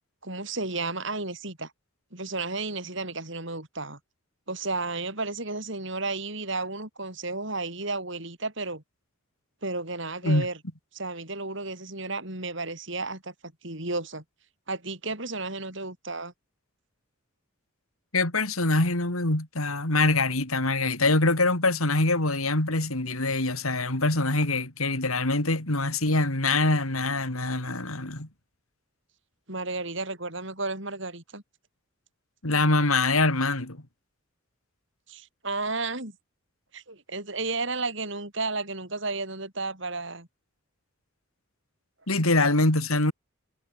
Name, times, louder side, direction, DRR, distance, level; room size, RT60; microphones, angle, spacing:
voice 1, 0.2-1.7 2.1-4.0 4.5-8.8 9.6-10.6 10.9-14.2 14.7-16.3 29.5-31.4 35.1-36.2 36.7-40.3, right 3 dB, 60° right, 5.9 m, -33 dB
voice 2, 18.1-28.3 32.4-33.8 42.1-43.1, left 2 dB, 85° left, 4.3 m, -24 dB
head